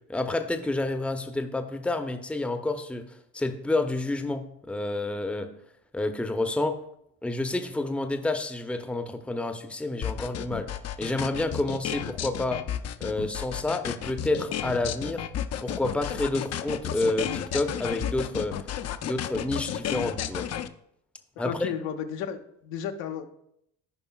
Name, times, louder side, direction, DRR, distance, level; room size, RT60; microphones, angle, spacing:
voice 1, 0.1-5.5 5.9-6.8 7.2-10.7 11.0-12.7 13.0-15.2 15.6-18.7 19.0-20.5 21.4-21.7, left 2 dB, 5° left, 7 dB, 0.7 m, -29 dB
sound 1, 10.0-20.7, left 10 dB, 40° left, 0.5 m, -32 dB
voice 2, 21.4-23.3, left 8 dB, 75° left, 5 dB, 0.9 m, -33 dB
14.5 x 5.3 x 2.3 m, 0.75 s
hypercardioid pair, 65°, 41 cm